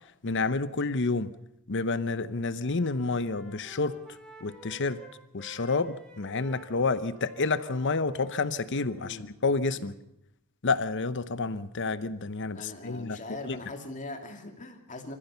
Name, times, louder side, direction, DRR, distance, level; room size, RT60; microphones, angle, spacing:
voice 1, 0.2-1.3 1.7-4.0 4.4-5.0 5.3-9.9 10.6-13.2 13.4-13.6, left 3 dB, 55° left, 13 dB, 0.9 m, -29 dB
Wind instrument woodwind instrument, 1.9-2.3 2.6-9.2, equal, 5° left, 4.3 m, -52 dB
voice 2, 8.9-9.3 9.8-10.0 12.5-15.1, left 2 dB, 35° left, 4 dB, 2.8 m, -41 dB
26.0 x 15.0 x 6.9 m, 0.77 s
head